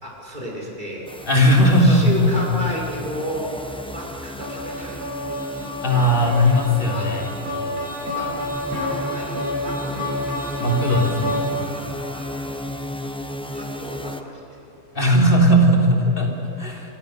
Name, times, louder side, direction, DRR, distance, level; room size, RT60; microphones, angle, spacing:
voice 1, 0.0-1.1 1.7-3.5 3.9-5.2 6.9-7.1 8.0-8.3 8.7-10.3 11.7-12.7 13.1-13.2 13.5-14.7, equal, 30° right, -3 dB, 5.6 m, -33 dB
sound 1, 1.1-14.2, left 1 dB, 5° left, 0.9 m, -34 dB
voice 2, 1.3-2.3 5.8-7.3 10.6-11.5 14.9-16.9, equal, 35° left, 0 dB, 3.8 m, -18 dB
sound 2, 4.4-11.8, left 1 dB, 80° right, 7.4 m, -29 dB
26.0 x 25.0 x 6.7 m, 2.7 s
omnidirectional pair, 1.6 m